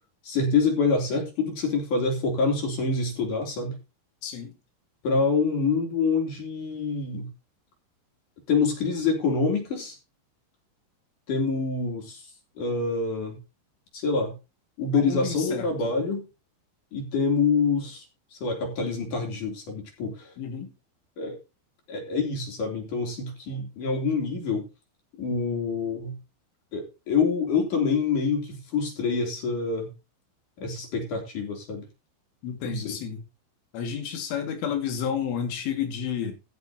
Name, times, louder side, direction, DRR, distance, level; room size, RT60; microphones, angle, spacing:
voice 1, 0.2-3.8 5.0-7.3 8.5-10.0 11.3-12.2 12.6-13.4 13.9-14.3 14.8-16.3 16.9-18.0 18.4-20.3 21.2-21.4 21.9-24.7 25.2-26.1 26.7-29.9 30.6-31.9 32.6-33.0, left 4 dB, 45° left, 4.5 m, -26 dB
voice 2, 4.2-4.5 14.9-15.9 20.4-20.7 32.4-33.2 33.7-36.3, left 8 dB, 85° left, 4.7 m, -31 dB
14.5 x 10.5 x 2.9 m
omnidirectional pair, 5.4 m